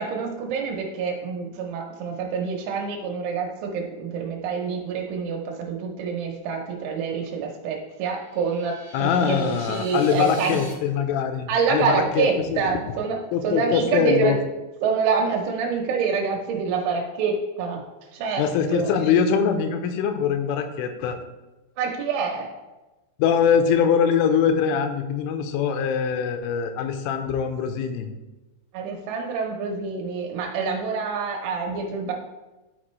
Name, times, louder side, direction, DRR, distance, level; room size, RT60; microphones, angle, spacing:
voice 1, 0.0-10.6 11.5-14.4 14.8-17.8 18.1-18.9 21.8-22.5 28.7-32.1, right 5 dB, 80° right, 0 dB, 3.2 m, -26 dB
sound 1, 8.0-10.7, right 1 dB, 10° left, 0.7 m, -45 dB
voice 2, 8.9-12.7 13.3-14.4 18.4-21.2 23.2-28.1, left 7 dB, 85° left, 7 dB, 3.1 m, -23 dB
12.5 x 4.3 x 3.1 m, 1.1 s
omnidirectional pair, 5.6 m